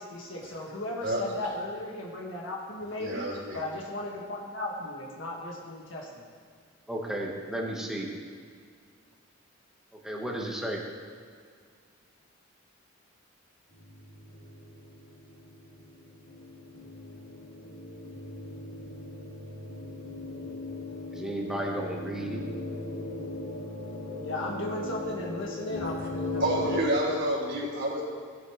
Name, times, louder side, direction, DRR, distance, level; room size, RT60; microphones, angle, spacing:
voice 1, 0.0-3.3 3.5-6.3 24.2-26.4, left 1 dB, 65° left, -2 dB, 1.9 m, -36 dB
voice 2, 3.0-3.6 26.4-28.0, right 1 dB, 55° right, -5 dB, 3.5 m, -29 dB
voice 3, 6.9-8.1 10.0-10.8 21.1-22.4, right 1 dB, 5° right, -2 dB, 1.5 m, -33 dB
sound 1, 13.7-26.8, left 2 dB, 85° left, 3.4 m, -38 dB
17.0 x 9.9 x 3.3 m, 2.1 s
head